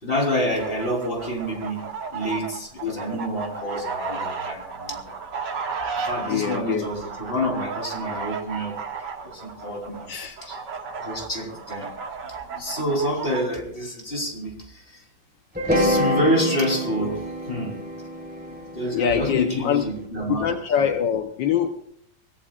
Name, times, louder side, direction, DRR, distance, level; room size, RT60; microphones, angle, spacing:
voice 1, 0.0-1.8 2.1-5.2 6.0-8.8 9.2-10.1 10.4-10.6 11.0-11.9 12.2-15.0 15.7-17.8 18.5-20.5 20.8-20.9, equal, 30° left, 1 dB, 3.8 m, -28 dB
sound 1, 0.5-13.4, right 5 dB, 65° right, 2.4 m, -34 dB
voice 2, 2.8-3.2 6.3-6.9 10.1-10.4 17.0-17.1 18.9-19.9 20.3-21.8, left 8 dB, 75° left, 6 dB, 1.6 m, -24 dB
sound 2, 15.6-19.7, equal, 5° right, 3.4 m, -26 dB
24.5 x 18.0 x 2.4 m, 0.65 s
omnidirectional pair, 2.0 m